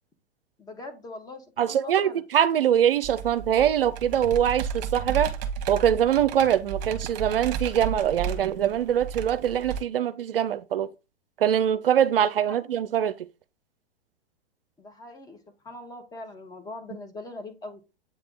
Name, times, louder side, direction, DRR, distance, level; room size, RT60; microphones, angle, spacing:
voice 1, 0.6-2.2 12.5-12.7 14.8-15.4 15.6-17.8, left 2 dB, 10° left, 1.1 m, -41 dB
voice 2, 1.6-5.3 5.7-10.9 11.4-13.1, right 9 dB, 60° right, 0.5 m, -23 dB
Computer keyboard, 3.0-9.8, right 6 dB, 40° right, 1.0 m, -33 dB
8.2 x 3.4 x 3.8 m
figure-of-eight pair, 105°, 33 cm